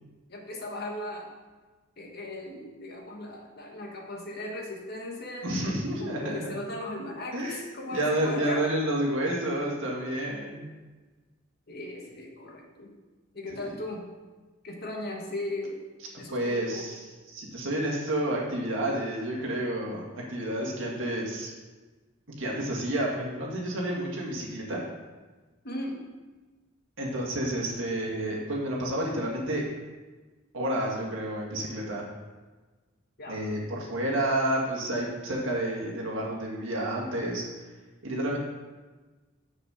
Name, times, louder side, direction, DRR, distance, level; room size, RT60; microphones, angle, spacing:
voice 1, 0.3-1.3 2.0-5.5 6.0-8.7 11.7-12.9 13.3-14.1 14.6-15.8 16.2-16.8 25.6-26.0 33.2-33.4, left 1 dB, 50° left, 0 dB, 1.4 m, -37 dB
voice 2, 5.4-6.5 7.3-10.6 16.3-21.5 22.4-24.8 27.0-29.6 30.5-32.0 33.3-37.4 38.0-38.4, right 1 dB, 65° right, -3 dB, 2.1 m, -30 dB
7.3 x 6.6 x 5.0 m, 1.3 s
head